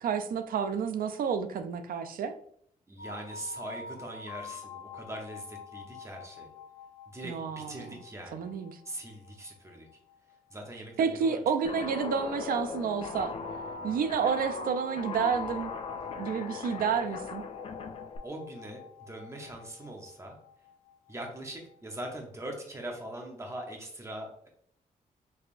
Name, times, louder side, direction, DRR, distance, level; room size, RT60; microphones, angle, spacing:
voice 1, 0.0-2.3 7.2-7.9 8.3-8.7 11.0-13.3 13.8-15.7 16.2-17.4, right 6 dB, 80° right, 9 dB, 0.4 m, -30 dB
voice 2, 2.9-6.5 7.1-8.5 8.8-9.9 10.5-11.4 13.8-14.2 18.2-20.4 21.1-24.5, right 1 dB, 20° right, 2 dB, 0.8 m, -42 dB
sound 1, 3.0-11.8 13.0-22.2, left 4 dB, 85° left, 0.6 m, -47 dB
Guitar, 11.6-18.2, left 5 dB, 45° left, 0.4 m, -39 dB
3.4 x 3.2 x 2.5 m, 0.65 s
wide cardioid pair, 120°, 15 cm